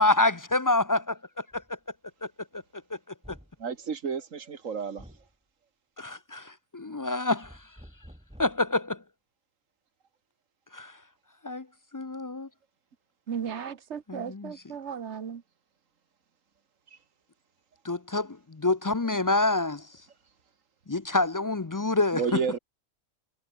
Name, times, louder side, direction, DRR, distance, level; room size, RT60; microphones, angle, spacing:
voice 1, 0.0-1.6 2.2-2.6 6.0-7.6 8.4-9.0 10.7-10.9 11.4-11.7 11.9-12.5 14.1-14.5 17.8-19.9 20.9-22.4, left 2 dB, 30° left, 0.3 m, -27 dB
sound 1, 1.5-1.7 3.2-3.6 5.0-5.3 7.4-8.7, equal, 5° right, 5.0 m, -50 dB
voice 2, 3.6-5.1 22.1-22.6, right 6 dB, 80° right, 2.0 m, -31 dB
voice 3, 13.3-15.4, right 7 dB, 60° right, 1.5 m, -36 dB
omnidirectional pair, 1.3 m